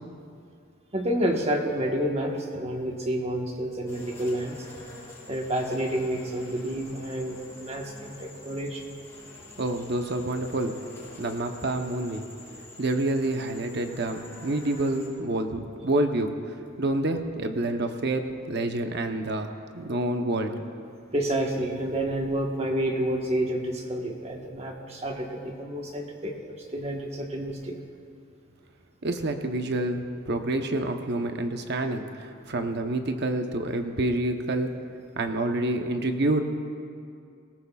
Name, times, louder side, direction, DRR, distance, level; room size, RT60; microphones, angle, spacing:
voice 1, 0.9-4.5 5.3-8.8 21.1-27.8, right 1 dB, 30° right, 1 dB, 1.3 m, -29 dB
sound 1, 3.9-15.1, left 2 dB, 15° left, 4.2 m, -47 dB
voice 2, 9.6-10.8 11.2-12.3 12.8-20.6 29.0-34.7 35.2-36.5, right 1 dB, 55° right, 5 dB, 0.9 m, -28 dB
20.0 x 18.0 x 2.4 m, 2.4 s
head